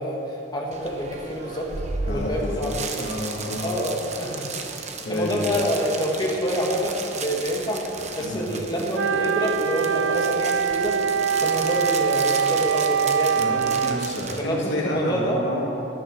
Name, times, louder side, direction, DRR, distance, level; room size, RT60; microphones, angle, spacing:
voice 1, 0.0-1.7 2.1-2.9 3.6-4.5 5.1-7.9 8.1-11.0 11.4-13.4 14.3-15.4, equal, 25° left, -1 dB, 1.8 m, -27 dB
sound 1, 0.7-14.4, right 4 dB, 40° right, 0.9 m, -35 dB
voice 2, 2.1-3.7 5.0-5.6 8.2-8.5 13.4-15.7, left 1 dB, 70° left, -3 dB, 2.4 m, -29 dB
Wind instrument woodwind instrument, 8.9-14.1, right 6 dB, 90° right, 0.4 m, -23 dB
11.0 x 10.0 x 6.5 m, 2.9 s
head